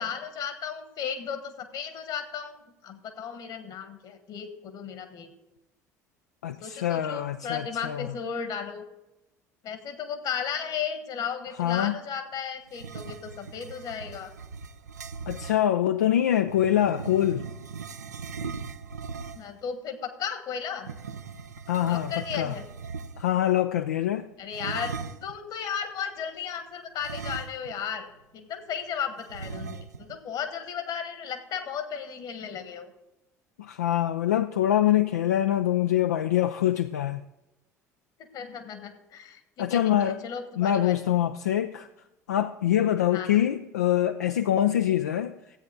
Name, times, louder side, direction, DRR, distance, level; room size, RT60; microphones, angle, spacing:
voice 1, 0.0-5.3 6.6-8.8 9.6-14.3 19.3-20.9 21.9-22.6 24.4-24.9 25.2-28.1 28.3-32.9 38.3-40.9 43.1-43.4, left 7 dB, 45° left, 1.4 m, -35 dB
voice 2, 6.4-8.1 11.6-12.0 15.3-17.5 21.7-22.5 23.2-24.3 33.6-37.2 39.6-40.2 40.6-41.9 42.3-45.4, left 11 dB, 75° left, 0.3 m, -24 dB
sound 1, 12.7-15.6 16.4-19.6 20.8-23.4 24.5-25.4 27.0-27.9 28.2-28.3 29.3-30.2, right 5 dB, 80° right, 0.4 m, -39 dB
14.0 x 8.5 x 3.8 m
figure-of-eight pair, 60°, 9 cm